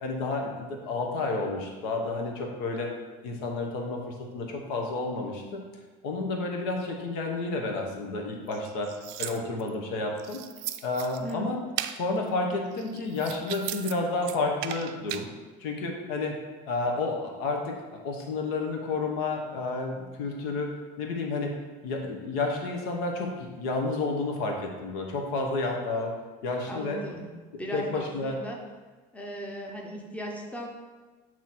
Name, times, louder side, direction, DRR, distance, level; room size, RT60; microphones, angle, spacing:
voice 1, 0.0-2.9 3.2-5.6 6.0-8.9 9.2-10.4 10.8-11.6 11.9-15.3 15.6-16.4 16.6-20.7 21.0-21.5 21.8-26.2 26.4-27.0 27.7-28.4, left 3 dB, 85° left, 1 dB, 1.0 m, -30 dB
sound 1, 8.5-9.7 10.2-11.3 11.8-12.0 12.7-13.9 14.2-15.3, right 13 dB, 80° right, 0.4 m, -37 dB
voice 2, 26.4-27.3 27.6-28.6 29.1-30.7, equal, 5° left, 0 dB, 0.8 m, -37 dB
7.6 x 3.0 x 4.2 m, 1.3 s
cardioid pair, 120°, 18 cm